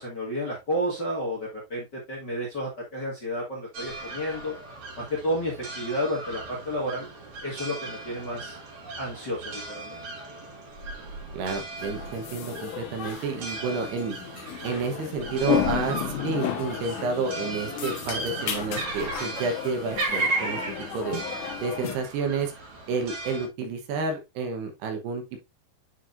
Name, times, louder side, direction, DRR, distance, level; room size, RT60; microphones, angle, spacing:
voice 1, 0.0-4.5 4.9-7.1 7.4-8.6 9.0-10.0, equal, 40° left, -5 dB, 1.7 m, -31 dB
sound 1, 3.7-23.5, right 2 dB, 55° right, 1.6 m, -36 dB
voice 2, 11.3-14.2 14.6-20.6 20.9-21.2 21.6-22.5 22.9-25.4, right 4 dB, 75° right, 5 dB, 3.1 m, -30 dB
sound 2, 11.8-22.0, left 10 dB, 65° left, 2.2 m, -33 dB
9.7 x 4.8 x 2.6 m, 0.22 s
omnidirectional pair, 4.8 m